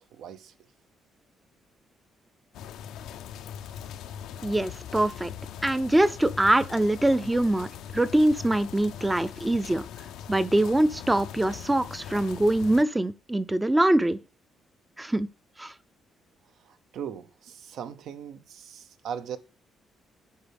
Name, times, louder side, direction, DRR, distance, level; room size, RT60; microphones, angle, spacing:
voice 1, 0.1-0.5 16.6-19.4, right 8 dB, 75° right, 0.7 m, -39 dB
sound 1, 2.5-12.8, left 9 dB, 90° left, 0.5 m, -41 dB
voice 2, 4.4-5.3 5.6-7.7 7.9-9.8 10.3-14.2 15.0-15.3 15.6-15.7, right 1 dB, 10° right, 0.5 m, -23 dB
8.8 x 5.4 x 3.4 m
cardioid pair, 120°, 0 cm